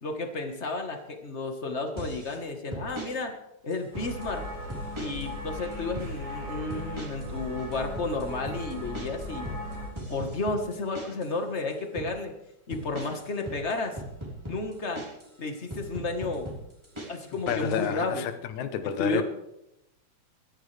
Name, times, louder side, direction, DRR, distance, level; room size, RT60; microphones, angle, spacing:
voice 1, 0.0-3.3 3.6-4.4 5.0-9.5 10.1-12.3 12.7-14.0 14.5-15.0 15.4-16.5 17.1-18.3 19.0-19.2, left 3 dB, 40° left, 1.0 m, -32 dB
sound 1, 2.0-2.4 2.7-3.1 3.7-4.3 4.7-5.3 5.6-6.1 6.7-7.3 7.6-11.3 11.7-12.1 12.7-15.3 15.7-17.9, right 1 dB, 10° right, 2.9 m, -39 dB
sound 2, 3.9-9.9, left 1 dB, 70° right, 7.2 m, -38 dB
voice 2, 17.5-19.2, left 9 dB, 80° left, 2.4 m, -30 dB
22.5 x 13.5 x 3.4 m
omnidirectional pair, 3.3 m